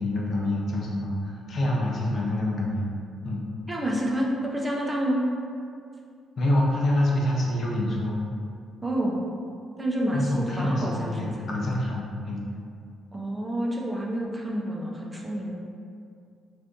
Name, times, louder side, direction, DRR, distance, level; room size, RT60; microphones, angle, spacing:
voice 1, 0.0-2.9 3.2-3.4 6.4-8.2 10.1-12.4, left 1 dB, 55° left, -3 dB, 0.6 m, -26 dB
voice 2, 3.7-5.2 8.8-9.2 9.8-11.9 13.1-15.5, right 1 dB, 20° right, -2 dB, 0.5 m, -29 dB
2.6 x 2.5 x 3.5 m, 2.3 s
cardioid pair, 90°, 0 cm